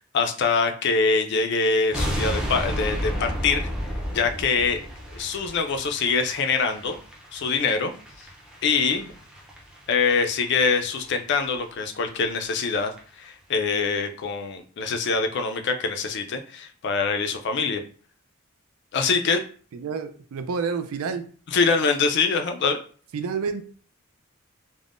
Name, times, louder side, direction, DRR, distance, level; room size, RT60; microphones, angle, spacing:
voice 1, 0.1-3.7 4.1-4.8 5.1-7.0 7.3-7.9 8.6-9.1 9.9-12.9 13.2-17.8 18.9-19.4 21.5-22.8, left 4 dB, 55° left, 0.4 m, -24 dB
sound 1, 1.9-11.1 11.4-11.5 11.9-12.0 12.3-12.4 12.6-13.0 13.2-13.3, equal, 5° right, 0.5 m, -33 dB
voice 2, 19.7-21.3 23.1-23.6, right 5 dB, 80° right, 0.4 m, -29 dB
3.4 x 2.1 x 2.4 m
head